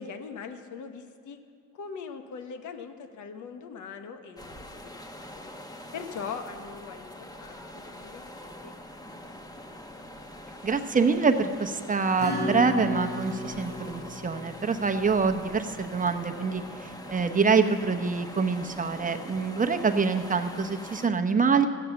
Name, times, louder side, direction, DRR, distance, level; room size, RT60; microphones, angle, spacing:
voice 1, 0.0-1.4 1.7-4.6 5.2-5.5 5.9-9.3, left 5 dB, 75° left, 7 dB, 1.2 m, -41 dB
sound 1, 4.4-21.1, left 1 dB, 10° left, 1.0 m, -44 dB
voice 2, 10.6-16.6 17.1-21.7, right 5 dB, 25° right, 6 dB, 0.8 m, -25 dB
Acoustic guitar / Strum, 12.2-16.5, left 1 dB, 35° left, 4.0 m, -35 dB
14.0 x 8.6 x 7.0 m, 2.2 s
cardioid pair, 90°, 30 cm